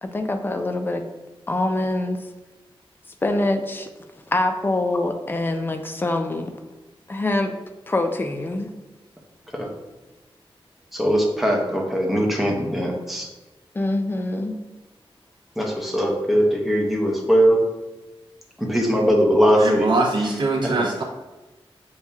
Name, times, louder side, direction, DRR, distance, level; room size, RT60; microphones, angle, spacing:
voice 1, 0.0-1.0 1.5-2.2 3.2-3.9 4.3-6.5 7.1-7.5 7.9-8.7 13.7-14.6, left 2 dB, 20° left, 6 dB, 0.4 m, -24 dB
voice 2, 10.9-13.3 15.6-17.6 18.6-19.9 20.6-20.9, equal, ahead, -1 dB, 0.8 m, -20 dB
voice 3, 19.6-21.0, right 3 dB, 55° right, 1 dB, 0.5 m, -22 dB
7.0 x 2.7 x 2.3 m, 1.1 s
wide cardioid pair, 120°, 10 cm